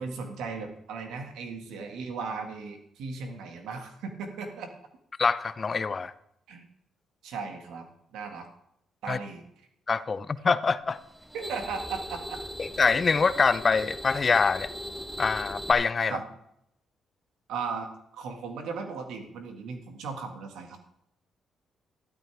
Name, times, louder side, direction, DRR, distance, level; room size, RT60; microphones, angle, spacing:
voice 1, 0.0-4.7 6.5-6.7 7.2-7.9 8.1-8.5 9.0-9.4 11.3-12.4 16.1-16.2 17.5-20.8, right 5 dB, 90° right, 5 dB, 1.8 m, -36 dB
voice 2, 5.2-6.1 9.1-9.2 9.9-11.0 12.6-14.7 15.2-16.2, left 5 dB, 35° left, 15 dB, 0.6 m, -24 dB
sound 1, 10.9-15.7, equal, 15° right, 2.1 m, -39 dB
13.0 x 12.5 x 3.4 m, 0.77 s
cardioid pair, 95°, 0 cm